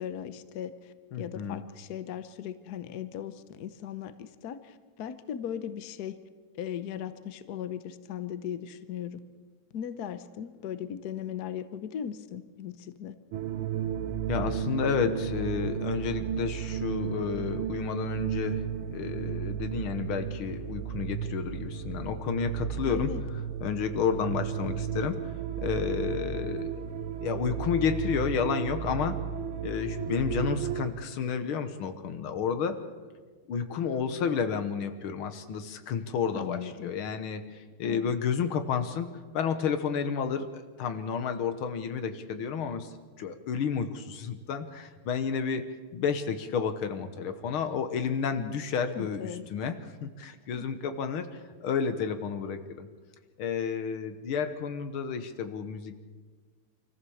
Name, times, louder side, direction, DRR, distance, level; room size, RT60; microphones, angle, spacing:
voice 1, 0.0-6.2 6.6-9.2 9.7-13.1 22.9-23.2 36.3-36.9 37.9-38.1 48.4-48.6 49.0-49.5 50.6-50.7, left 9 dB, 55° left, 12 dB, 1.3 m, -38 dB
voice 2, 1.1-1.6 14.3-18.7 18.9-23.1 23.6-26.8 27.2-29.2 29.6-32.8 33.5-45.6 45.9-52.9 53.4-56.1, left 6 dB, 85° left, 9 dB, 2.0 m, -31 dB
sound 1, 13.3-30.9, right 8 dB, 85° right, 1.8 m, -34 dB
25.0 x 14.5 x 7.1 m, 1.5 s
omnidirectional pair, 2.3 m